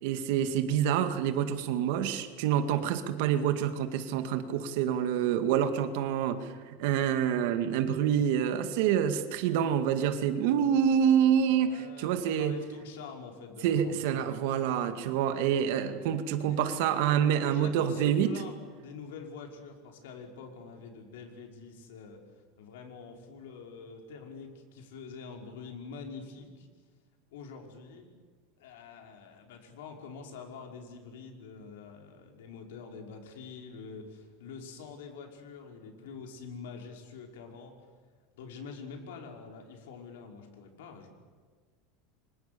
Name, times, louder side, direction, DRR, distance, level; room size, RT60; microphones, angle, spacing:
voice 1, 0.0-6.5 6.8-12.5 13.6-18.3, right 9 dB, 60° right, 9 dB, 2.1 m, -27 dB
voice 2, 11.5-14.4 15.7-16.0 16.5-17.0 17.4-26.7 27.3-28.1 28.6-37.9 38.3-41.1, left 5 dB, 90° left, 2 dB, 5.4 m, -46 dB
29.5 x 25.0 x 7.0 m, 1.5 s
supercardioid pair, 170°, 0 cm